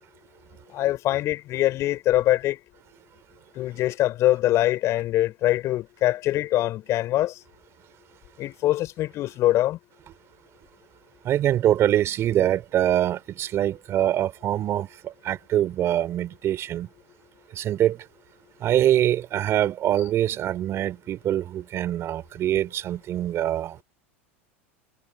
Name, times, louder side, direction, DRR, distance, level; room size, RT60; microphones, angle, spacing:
voice 1, 0.7-2.6 3.5-7.4 8.4-9.8, left 14 dB, 45° left, 5.1 m, -23 dB
voice 2, 11.2-16.9 17.5-18.1 18.6-23.8, right 11 dB, 40° right, 3.1 m, -24 dB
hypercardioid pair, 90°, 7 cm